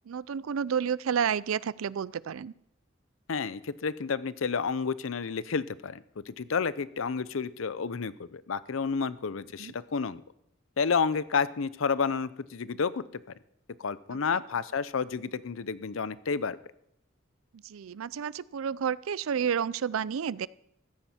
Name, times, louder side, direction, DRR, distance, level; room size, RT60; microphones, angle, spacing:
voice 1, 0.1-2.5 9.6-9.7 14.3-14.4 17.6-20.5, right 7 dB, 85° right, 21 dB, 0.4 m, -30 dB
voice 2, 3.3-10.2 10.8-13.0 13.8-16.6, left 5 dB, 80° left, 17 dB, 0.6 m, -30 dB
15.0 x 13.5 x 4.3 m, 0.75 s
head